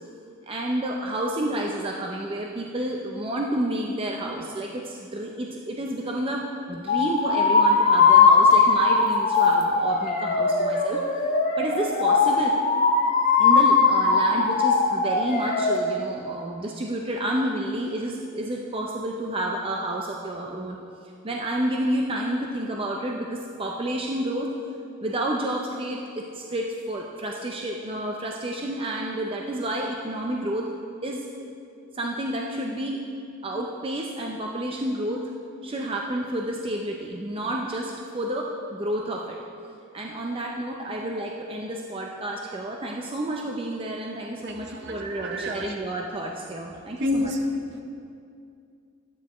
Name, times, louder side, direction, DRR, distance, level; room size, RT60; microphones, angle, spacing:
voice 1, 0.5-11.0 11.6-12.5 13.4-20.8 21.2-24.5 25.0-30.7 31.0-31.2 31.9-33.0 33.4-35.3 35.6-39.4 39.9-47.3, right 1 dB, 25° right, 0 dB, 0.5 m, -30 dB
sonido ambulancia, 6.9-15.8, left 4 dB, 35° left, 0.9 m, -20 dB
voice 2, 44.4-45.7 47.0-47.4 47.7-47.8, left 1 dB, 55° right, 3 dB, 0.9 m, -29 dB
12.5 x 9.1 x 3.0 m, 2.4 s
head